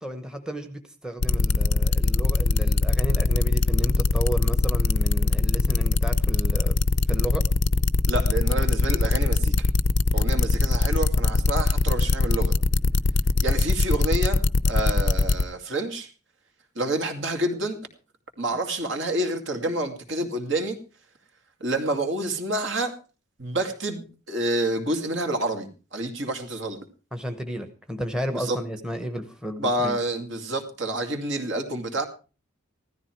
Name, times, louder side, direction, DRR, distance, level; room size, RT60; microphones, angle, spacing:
voice 1, 0.0-6.8 7.1-7.4 27.1-30.0, equal, 5° right, 8 dB, 1.0 m, -33 dB
sound 1, 1.2-15.4, left 3 dB, 55° left, 0.6 m, -21 dB
voice 2, 8.1-9.7 10.1-12.5 13.4-16.1 16.7-17.8 18.4-20.8 21.6-23.0 23.4-26.8 28.3-28.6 29.6-32.0, right 1 dB, 60° right, 5 dB, 2.5 m, -28 dB
16.0 x 13.5 x 4.6 m, 0.35 s
head